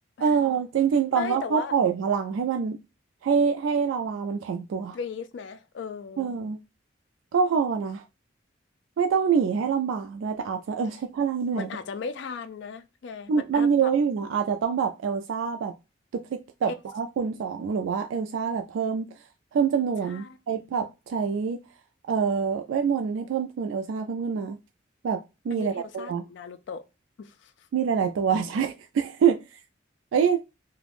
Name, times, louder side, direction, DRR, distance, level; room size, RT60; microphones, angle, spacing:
voice 1, 0.2-2.8 3.2-5.0 6.2-6.6 7.3-8.0 9.0-11.7 13.3-15.7 16.1-19.1 19.5-21.6 22.1-24.6 25.0-25.2 25.5-26.2 27.7-29.4 30.1-30.4, right 6 dB, 90° right, 0.3 m, -25 dB
voice 2, 1.2-1.7 4.9-6.3 11.5-13.9 16.7-16.8 20.0-20.4 25.5-26.8 27.2-27.7, left 6 dB, 65° left, 0.3 m, -36 dB
2.4 x 2.1 x 3.3 m
head